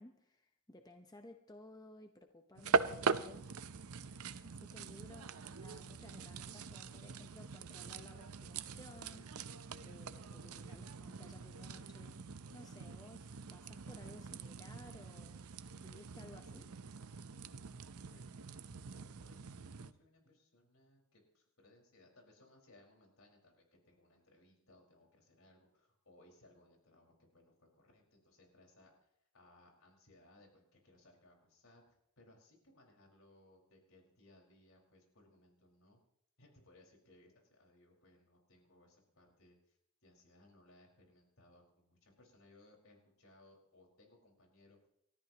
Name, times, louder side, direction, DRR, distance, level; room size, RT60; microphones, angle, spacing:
voice 1, 0.0-3.5 4.4-9.3 9.8-12.2 12.5-15.4 15.8-16.7, left 1 dB, 15° left, 5 dB, 0.9 m, -57 dB
sound 1, 2.6-19.9, right 5 dB, 90° right, 0.7 m, -42 dB
voice 2, 17.4-18.4 18.9-36.0 36.4-39.8 40.0-44.9, left 2 dB, 75° left, 0 dB, 5.0 m, -65 dB
29.5 x 14.0 x 3.0 m, 0.72 s
head